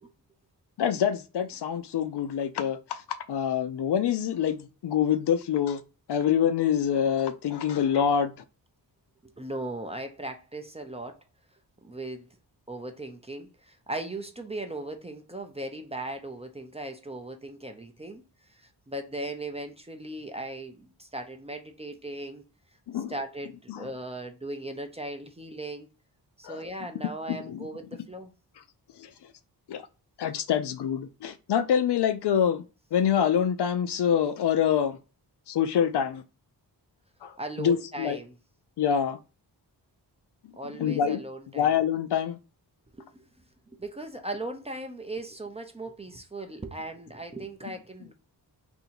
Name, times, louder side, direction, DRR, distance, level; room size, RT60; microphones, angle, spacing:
voice 1, 0.8-3.0 3.3-5.8 6.1-8.3 22.9-23.1 23.7-23.9 26.4-26.6 27.3-27.7 29.0-29.1 29.7-29.8 30.2-32.6 32.9-35.0 35.5-36.2 37.2-38.2 38.8-39.2 40.8-41.2 41.6-42.4, left 8 dB, 70° left, 0.5 m, -26 dB
voice 2, 9.2-11.2 11.8-12.3 12.7-18.2 18.5-22.4 22.9-25.9 26.4-28.3 37.4-38.4 40.6-41.8 43.0-43.3 43.7-48.1, right 2 dB, 15° right, 0.4 m, -38 dB
2.8 x 2.7 x 4.1 m
wide cardioid pair, 120°, 42 cm